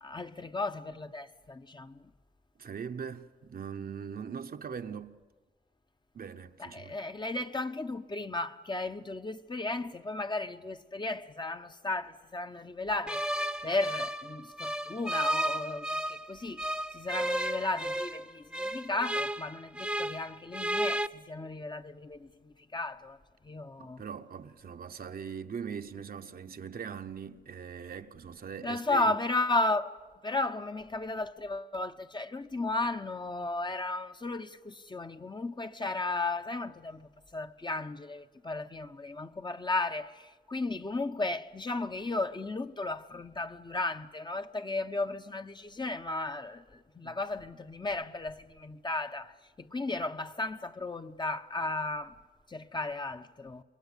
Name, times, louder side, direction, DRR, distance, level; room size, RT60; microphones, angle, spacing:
voice 1, 0.0-2.0 6.6-13.2 13.6-16.7 16.9-23.2 23.4-24.0 28.6-29.9 30.2-52.1 52.5-53.6, left 2 dB, 30° left, 0.9 m, -34 dB
voice 2, 2.6-5.2 6.1-7.0 23.8-29.2 47.0-47.2, right 7 dB, 65° right, 1.0 m, -41 dB
sound 1, 13.1-16.2 16.6-20.3 20.5-21.1, right 1 dB, 5° right, 0.9 m, -33 dB
27.0 x 22.5 x 8.5 m
cardioid pair, 70°, 17 cm